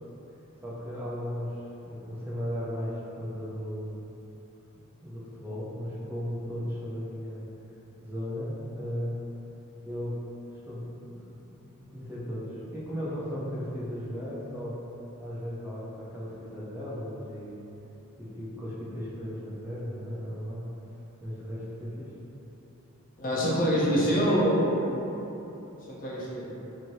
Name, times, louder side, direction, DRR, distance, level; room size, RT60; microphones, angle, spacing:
voice 1, 0.6-1.6 1.8-4.0 5.0-7.4 8.0-9.2 9.8-10.2 10.5-11.4 11.9-14.8 15.2-17.6 18.2-20.7 21.2-22.1, equal, 10° right, -9 dB, 0.5 m, -36 dB
voice 2, 23.2-24.9 25.9-26.5, equal, 40° left, -7 dB, 0.5 m, -25 dB
3.1 x 2.7 x 2.7 m, 3.0 s
head